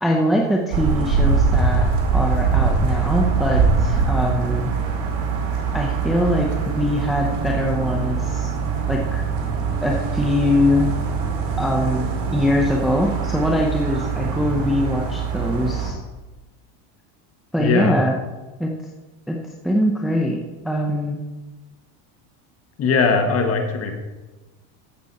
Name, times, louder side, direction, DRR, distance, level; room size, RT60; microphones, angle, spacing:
voice 1, 0.0-4.7 5.7-8.5 8.9-9.2 9.8-10.9 11.6-16.0 17.5-18.2 18.6-18.7 19.3-19.4 19.6-21.2, left 1 dB, ahead, 0 dB, 0.6 m, -22 dB
sound 1, 0.7-15.9, right 5 dB, 65° right, 2.5 m, -22 dB
voice 2, 17.6-18.0 22.8-23.9, left 4 dB, 30° left, 5 dB, 1.4 m, -20 dB
14.5 x 6.0 x 4.2 m, 1.2 s
cardioid pair, 150°, 45 cm